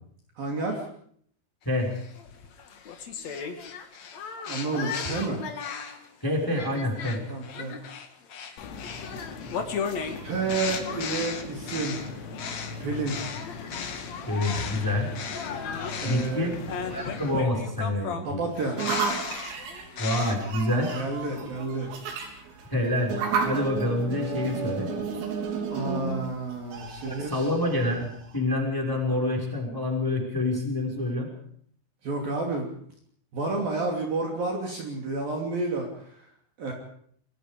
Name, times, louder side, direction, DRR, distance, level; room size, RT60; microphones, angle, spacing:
voice 1, 0.4-0.9 4.5-5.4 7.3-7.8 10.2-12.2 12.8-13.2 16.0-16.5 18.2-18.8 20.7-21.9 22.4-22.5 25.7-27.5 32.0-32.7 33.3-36.3 36.6-36.7, right 3 dB, 50° right, 0 dB, 4.2 m, -30 dB
sound 1, 1.9-6.1 6.5-14.8 15.1-20.3, left 6 dB, 50° left, 2.2 m, -36 dB
voice 2, 6.2-7.2 14.3-15.1 16.0-16.6 16.9-18.4 20.0-20.9 22.7-23.2 23.4-24.9 27.0-31.3, left 1 dB, 5° left, 0 dB, 4.9 m, -27 dB
sound 2, 8.6-17.4, left 4 dB, 85° left, 4.8 m, -39 dB
sound 3, 18.8-28.4, right 5 dB, 80° right, 6.1 m, -32 dB
26.5 x 22.5 x 5.2 m, 0.63 s
omnidirectional pair, 5.9 m